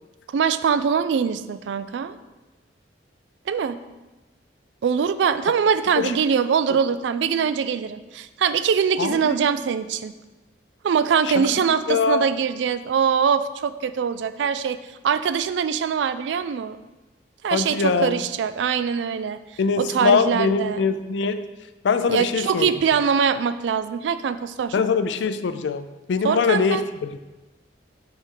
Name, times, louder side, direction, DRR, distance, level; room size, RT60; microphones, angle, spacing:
voice 1, 0.3-2.2 3.5-3.8 4.8-10.2 10.8-14.8 15.0-16.8 17.4-19.4 19.8-20.8 22.1-24.7 26.2-26.8, right 7 dB, 75° right, 13 dB, 0.3 m, -23 dB
voice 2, 9.0-9.4 11.2-11.6 11.9-12.3 17.5-18.2 19.6-21.5 21.8-22.7 24.7-27.2, left 5 dB, 75° left, 11 dB, 0.4 m, -23 dB
5.9 x 3.6 x 4.6 m, 1.1 s
head